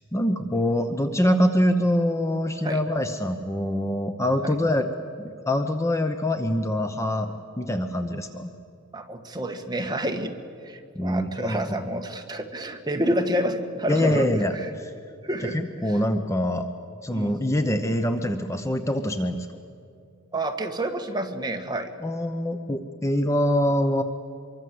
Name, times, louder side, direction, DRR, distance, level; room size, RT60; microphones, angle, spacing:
voice 1, 0.1-4.9 5.5-8.5 10.9-11.8 13.9-14.9 15.5-16.7 17.0-19.5 22.0-24.0, left 1 dB, 15° left, 7 dB, 0.9 m, -24 dB
voice 2, 8.9-10.3 10.6-14.3 14.5-14.7 15.2-15.6 15.9-16.0 17.1-17.3 20.3-21.9, right 1 dB, 20° right, 4 dB, 1.8 m, -29 dB
25.5 x 24.0 x 7.9 m, 2.4 s
head